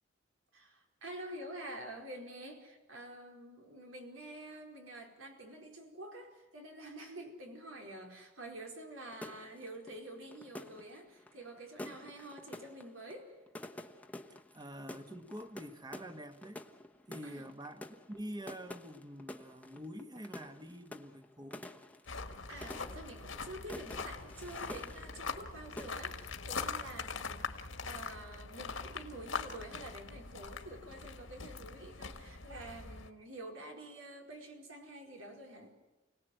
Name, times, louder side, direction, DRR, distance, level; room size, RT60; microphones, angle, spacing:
voice 1, 0.5-13.4 17.2-17.5 22.5-35.7, right 1 dB, 85° right, 2 dB, 4.7 m, -48 dB
sound 1, 9.1-25.5 25.8-26.3, left 1 dB, 10° left, 1.1 m, -49 dB
voice 2, 14.5-16.6 17.1-21.7, equal, 20° right, 8 dB, 1.6 m, -46 dB
sound 2, 22.1-33.1, left 4 dB, 75° left, 1.8 m, -42 dB
29.5 x 18.5 x 7.9 m, 1.1 s
head